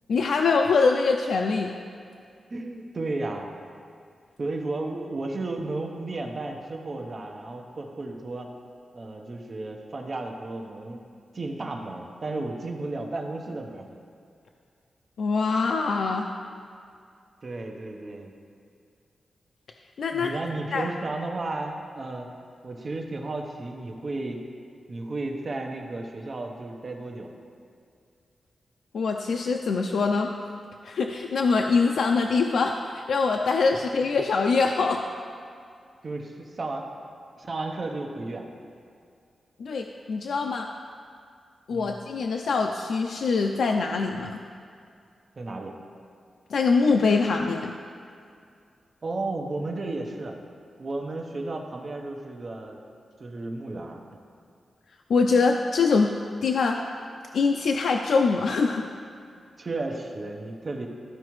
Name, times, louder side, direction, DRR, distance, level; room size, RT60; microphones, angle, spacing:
voice 1, 0.1-1.7 15.2-16.3 20.0-20.3 20.7-20.9 28.9-30.3 30.8-35.0 39.6-40.7 41.7-44.4 46.5-47.7 55.1-56.1 56.4-56.8 57.3-58.9, left 4 dB, 75° left, 3 dB, 0.4 m, -23 dB
voice 2, 2.5-3.5 4.4-8.5 8.9-11.0 11.3-13.8 17.4-18.3 20.1-22.3 22.6-24.4 24.9-27.3 36.0-36.9 37.4-38.5 41.7-42.0 45.4-45.8 49.0-50.3 50.8-52.8 53.2-54.0 59.6-60.9, right 2 dB, 35° right, 2 dB, 0.8 m, -33 dB
13.5 x 4.7 x 3.1 m, 2.3 s
wide cardioid pair, 180°, 0 cm